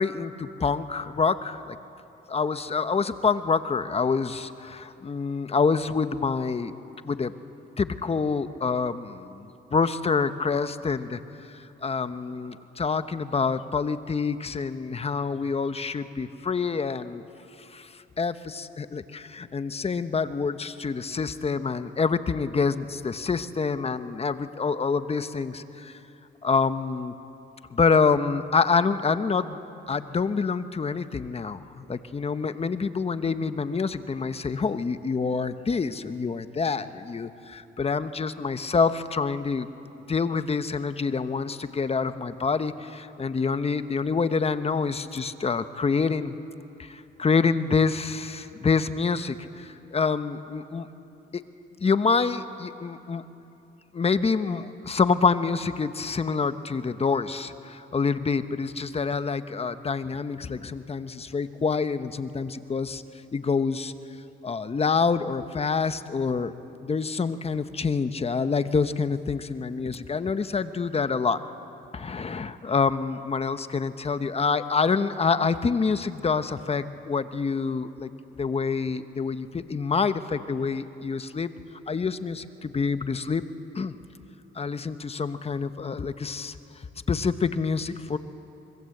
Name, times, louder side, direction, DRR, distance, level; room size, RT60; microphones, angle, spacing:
voice 1, 0.0-1.7 2.3-6.7 7.0-7.3 7.8-11.2 11.5-17.2 17.7-17.9 18.2-26.0 26.4-27.1 27.7-29.6 29.9-39.7 40.1-46.3 46.8-50.9 51.3-51.4 51.8-53.2 53.9-63.0 63.3-63.9 64.4-66.5 66.8-71.4 71.9-78.1 78.4-81.5 81.9-83.4 83.7-83.9 84.5-86.6 87.1-88.2, left 5 dB, 30° left, 11 dB, 1.1 m, -27 dB
25.5 x 22.0 x 7.9 m, 2.8 s
cardioid pair, 90°, 20 cm